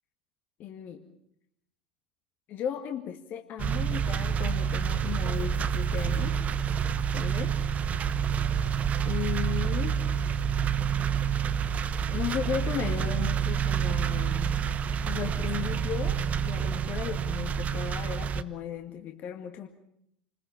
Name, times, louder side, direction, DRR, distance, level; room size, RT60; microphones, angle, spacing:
voice 1, 0.6-1.0 2.5-6.4 7.1-7.6 9.1-10.0 12.1-14.5 15.1-19.7, left 9 dB, 40° left, 4 dB, 2.0 m, -36 dB
sound 1, 3.6-18.4, right 7 dB, 30° right, 1.1 m, -28 dB
28.5 x 21.5 x 5.7 m, 0.74 s
figure-of-eight pair, 75°, 5 cm